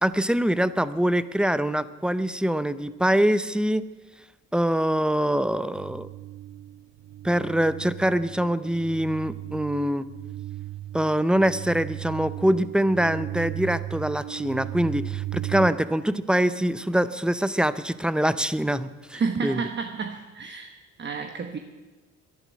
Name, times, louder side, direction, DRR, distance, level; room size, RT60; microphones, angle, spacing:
voice 1, 0.0-3.9 4.5-6.1 7.2-10.1 10.9-19.6, right 1 dB, 5° right, 15 dB, 0.6 m, -24 dB
sound 1, 5.8-15.7, right 14 dB, 60° right, 0.5 m, -36 dB
voice 2, 19.1-20.7 21.0-21.6, right 5 dB, 35° right, 7 dB, 1.1 m, -30 dB
11.5 x 11.0 x 9.7 m, 1.2 s
cardioid pair, 90°, 30 cm